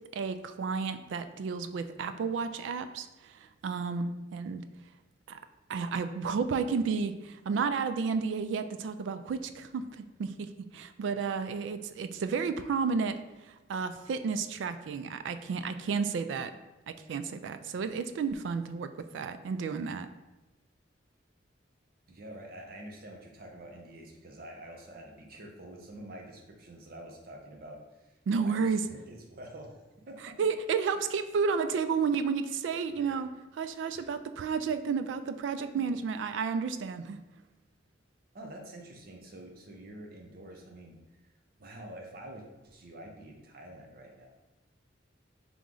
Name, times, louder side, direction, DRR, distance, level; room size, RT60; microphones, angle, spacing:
voice 1, 0.1-4.6 5.3-5.4 5.7-16.5 16.9-20.1 28.3-28.8 30.4-33.3 33.6-37.2, right 5 dB, 75° right, 10 dB, 0.3 m, -32 dB
voice 2, 22.1-30.3 30.9-31.0 32.9-33.2 33.9-34.1 38.3-41.0 41.6-44.3, right 1 dB, 50° right, 1 dB, 0.7 m, -47 dB
3.7 x 3.1 x 3.7 m, 1.0 s
head